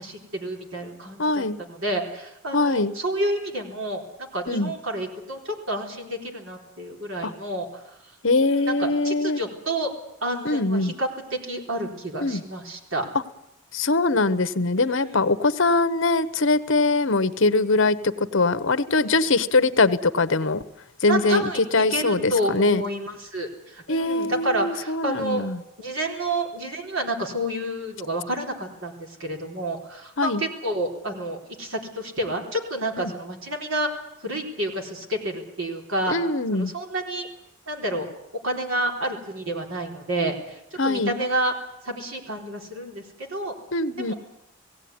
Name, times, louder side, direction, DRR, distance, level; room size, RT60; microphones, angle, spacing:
voice 1, 0.0-7.7 8.4-9.9 10.2-13.1 14.8-15.2 21.1-25.5 25.8-33.9 34.2-36.2 36.5-37.3 37.7-38.1 38.4-41.5 41.8-43.5 44.0-44.1, right 1 dB, 65° right, 2 dB, 4.1 m, -29 dB
voice 2, 1.2-1.6 2.5-2.9 4.5-4.7 7.2-7.3 8.2-9.4 10.4-10.9 12.2-12.4 13.7-20.6 21.0-22.8 23.9-25.6 30.2-30.4 33.0-33.1 36.1-36.7 40.8-41.2 43.7-44.1, left 3 dB, 60° left, 13 dB, 1.0 m, -22 dB
18.5 x 17.0 x 9.6 m, 0.83 s
head